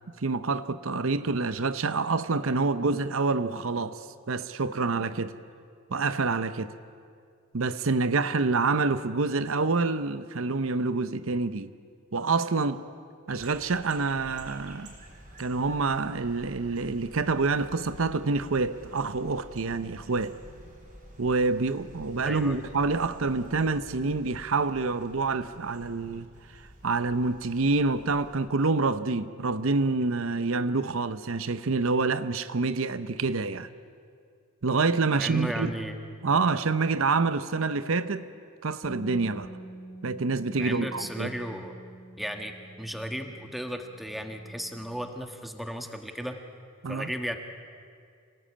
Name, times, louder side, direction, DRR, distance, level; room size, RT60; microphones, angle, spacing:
voice 1, 0.2-5.4 5.9-6.7 7.5-11.7 12.1-12.8 13.3-14.9 15.4-20.4 21.2-26.3 26.5-33.7 34.6-35.7 36.2-38.2 38.6-39.5 40.0-41.3 46.8-47.1, right 3 dB, 70° right, 0.7 m, -27 dB
sound 1, 13.3-28.5, equal, 40° right, 4.7 m, -49 dB
voice 2, 22.2-22.6 35.2-36.0 40.6-41.8 42.2-46.4 46.9-47.4, equal, ahead, 1.4 m, -35 dB
Bass guitar, 38.8-45.1, right 1 dB, 20° right, 3.1 m, -47 dB
27.0 x 18.5 x 8.7 m
head